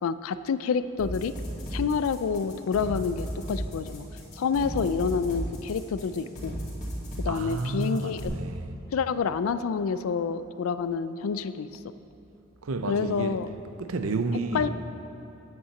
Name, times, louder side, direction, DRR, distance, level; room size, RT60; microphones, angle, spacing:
voice 1, 0.0-1.3 1.7-4.1 4.4-6.6 7.2-8.3 8.9-11.7 12.9-13.5 14.5-14.7, left 5 dB, 75° left, 13 dB, 0.3 m, -28 dB
sound 1, 1.0-8.3, equal, 35° left, 2.4 m, -34 dB
voice 2, 7.3-8.7 12.6-13.4 13.8-14.7, right 3 dB, 80° right, 9 dB, 0.6 m, -30 dB
9.2 x 5.6 x 7.1 m, 2.9 s
head